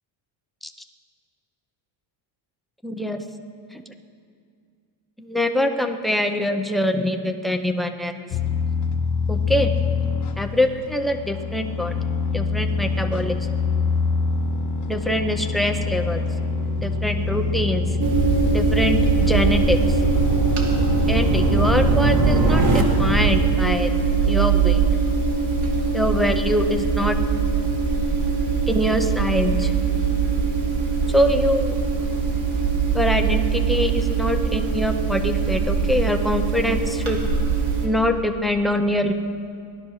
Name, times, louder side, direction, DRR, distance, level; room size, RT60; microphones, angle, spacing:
voice 1, 2.8-3.2 3.7-3.8 5.2-8.2 9.3-9.7 10.4-11.9 12.3-13.5 14.9-16.2 16.8-17.9 18.5-20.0 21.1-23.9 24.3-24.8 25.9-27.2 28.7-29.7 31.1-31.7 32.9-37.2 37.8-39.1, left 1 dB, ahead, 5 dB, 0.3 m, -24 dB
sound 1, 8.3-23.5, left 4 dB, 35° left, 0.9 m, -25 dB
sound 2, 11.8-22.8, right 2 dB, 40° right, 2.0 m, -29 dB
sound 3, 18.0-37.9, right 5 dB, 55° right, 2.6 m, -22 dB
18.0 x 11.5 x 6.3 m, 2.2 s
cardioid pair, 175°, 50 cm